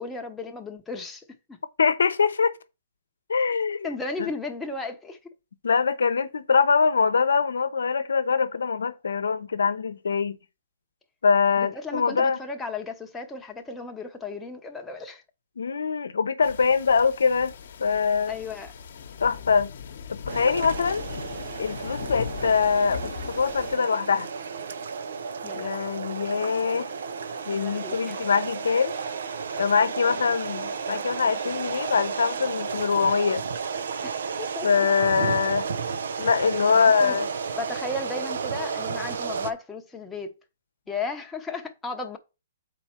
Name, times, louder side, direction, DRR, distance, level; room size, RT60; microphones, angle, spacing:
voice 1, 0.0-1.6 3.8-5.3 11.6-15.2 18.3-18.7 25.4-25.8 27.5-28.2 34.0-34.1 34.4-34.9 36.1-36.3 36.7-37.2 37.5-40.3 40.9-42.2, left 3 dB, 5° left, 0.9 m, -35 dB
voice 2, 1.8-2.5 3.3-3.9 4.2-4.3 5.6-10.4 11.2-12.4 15.6-17.5 17.8-18.3 19.2-19.7 20.1-21.0 21.6-24.3 25.5-26.9 27.5-28.9 29.6-33.4 34.6-35.7 36.2-37.3, left 5 dB, 90° left, 0.8 m, -23 dB
sound 1, 16.4-23.8, left 6 dB, 60° left, 1.0 m, -39 dB
sound 2, 20.3-39.5, right 5 dB, 75° right, 0.6 m, -33 dB
7.0 x 4.3 x 4.4 m
hypercardioid pair, 150°, 0 cm